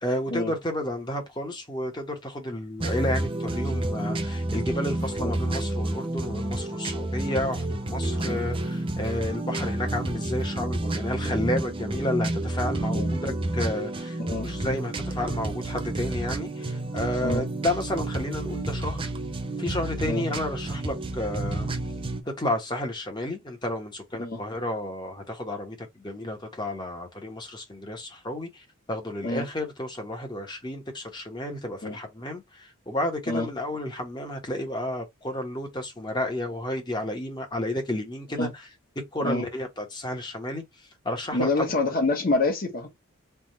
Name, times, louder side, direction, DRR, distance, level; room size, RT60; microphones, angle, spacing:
voice 1, 0.0-19.0 19.6-21.7 22.4-28.6 28.9-38.5 39.1-40.6 41.0-41.7, left 1 dB, 20° left, 1.1 m, -31 dB
sound 1, 2.8-22.2, right 1 dB, 25° right, 0.5 m, -30 dB
voice 2, 41.3-42.9, left 2 dB, 40° left, 1.4 m, -27 dB
3.5 x 2.4 x 4.3 m
head